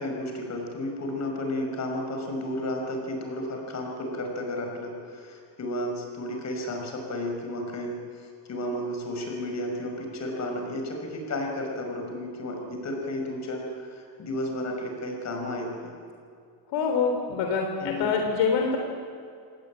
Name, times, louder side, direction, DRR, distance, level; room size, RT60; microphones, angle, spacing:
voice 1, 0.0-16.0 17.8-18.1, left 1 dB, 35° left, 2 dB, 5.9 m, -33 dB
voice 2, 16.7-18.8, left 5 dB, 65° left, 3 dB, 3.6 m, -25 dB
27.0 x 19.5 x 8.9 m, 2.4 s
cardioid pair, 155°, 46 cm